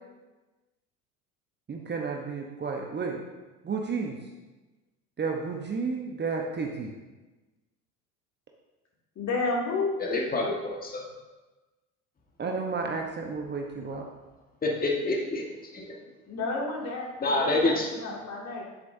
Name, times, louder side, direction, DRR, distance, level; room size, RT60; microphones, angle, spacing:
voice 1, 1.7-3.2 3.6-4.2 5.2-6.9 12.4-14.1, right 4 dB, 25° right, 1 dB, 1.1 m, -32 dB
voice 2, 9.2-9.9 16.0-18.6, left 3 dB, 35° left, -2 dB, 2.6 m, -31 dB
voice 3, 10.0-11.0 14.6-15.5 15.7-15.8 17.2-17.9, left 2 dB, 20° left, 0 dB, 1.6 m, -27 dB
10.0 x 8.3 x 2.7 m, 1.2 s
figure-of-eight pair, 70°, 45 cm